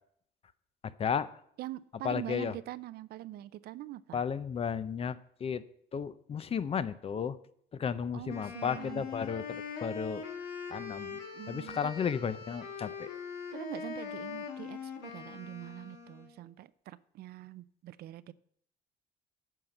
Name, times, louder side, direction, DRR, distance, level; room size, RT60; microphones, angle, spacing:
voice 1, 0.8-1.3 2.0-2.5 4.1-5.6 5.9-7.4 7.7-10.2 10.7-11.2 11.5-13.1, left 7 dB, 35° left, 16 dB, 0.6 m, -34 dB
voice 2, 1.6-4.2 8.1-9.1 11.3-11.9 13.5-18.3, right 15 dB, 65° right, 17 dB, 0.5 m, -44 dB
Wind instrument woodwind instrument, 8.3-16.4, left 5 dB, 85° left, 1.7 m, -42 dB
9.2 x 5.8 x 7.8 m, 0.67 s
cardioid pair, 110°, 17 cm